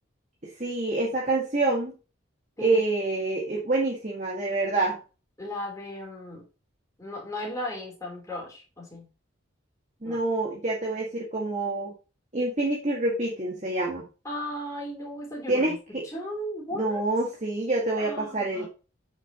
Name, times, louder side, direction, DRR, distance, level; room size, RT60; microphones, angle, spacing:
voice 1, 0.4-1.9 2.6-5.0 10.0-11.9 12.3-14.0 15.5-16.0 16.7-18.6, right 2 dB, 35° right, -2 dB, 1.9 m, -27 dB
voice 2, 5.4-6.4 7.0-9.1 10.0-10.2 14.2-15.8 16.0-17.0 18.0-18.7, left 1 dB, 15° left, -2 dB, 3.8 m, -36 dB
8.9 x 6.5 x 3.0 m, 0.32 s
head